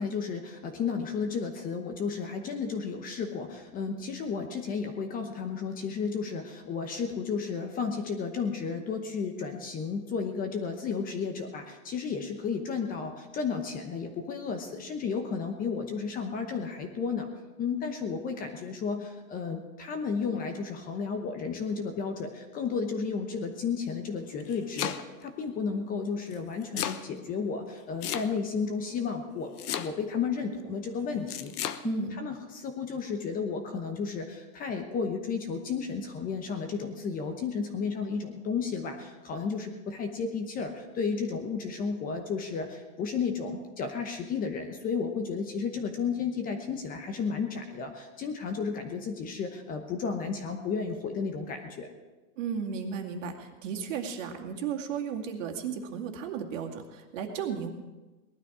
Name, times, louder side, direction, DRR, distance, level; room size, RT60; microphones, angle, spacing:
voice 1, 0.0-17.3 17.6-29.5 29.7-31.5 31.8-51.9, left 5 dB, 20° left, 5 dB, 0.9 m, -33 dB
Domestic sounds home sounds, 24.2-25.3 26.3-27.0 28.0-28.6 29.6-30.2 31.3-31.8, left 10 dB, 80° left, 1.1 m, -34 dB
voice 2, 31.8-32.2 52.4-57.7, right 7 dB, 55° right, 3 dB, 2.3 m, -34 dB
19.0 x 12.0 x 4.9 m, 1.2 s
hypercardioid pair, 150°, 46 cm